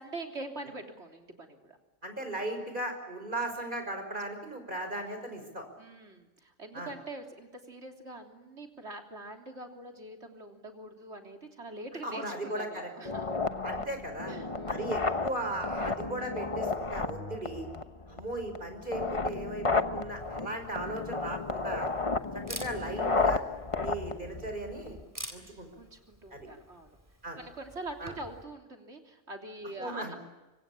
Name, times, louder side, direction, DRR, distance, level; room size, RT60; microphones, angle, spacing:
voice 1, 0.0-1.8 5.8-13.4 14.3-14.8 25.8-27.0 27.4-30.2, right 2 dB, 60° right, 3 dB, 3.7 m, -44 dB
voice 2, 2.0-5.6 6.7-6.9 12.0-12.9 13.6-14.4 14.7-17.7 18.1-21.9 22.5-23.4 23.8-25.0 25.3-25.7 26.3-26.5 27.2-27.4 28.0-28.1 29.8-30.2, right 1 dB, 40° right, 6 dB, 5.6 m, -37 dB
sound 1, 13.0-25.0, left 3 dB, 25° left, 1.1 m, -33 dB
Camera, 20.1-28.4, equal, 15° right, 3.7 m, -49 dB
25.5 x 25.0 x 8.7 m, 1.1 s
omnidirectional pair, 1.3 m